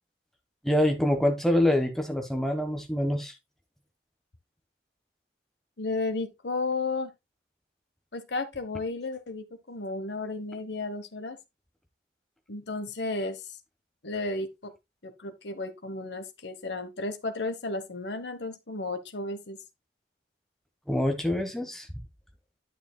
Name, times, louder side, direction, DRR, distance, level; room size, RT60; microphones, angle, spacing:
voice 1, 0.6-3.3 20.9-21.9, left 1 dB, ahead, 1.3 m, -25 dB
voice 2, 5.8-7.1 8.1-11.4 12.5-13.5 14.0-14.7 15.0-19.6, left 3 dB, 75° left, 1.2 m, -33 dB
10.5 x 6.8 x 2.3 m
head